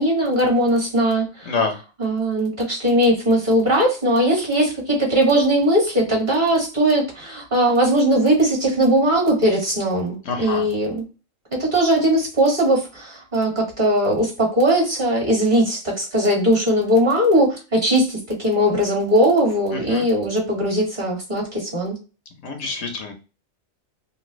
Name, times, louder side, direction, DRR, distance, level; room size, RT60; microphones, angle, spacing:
voice 1, 0.0-1.5 2.0-11.0 11.5-22.0, right 1 dB, 35° right, -2 dB, 1.7 m, -19 dB
voice 2, 10.2-10.7 19.9-20.1 22.4-23.1, left 4 dB, 70° left, 4 dB, 1.1 m, -26 dB
3.3 x 2.7 x 3.0 m, 0.32 s
omnidirectional pair, 1.4 m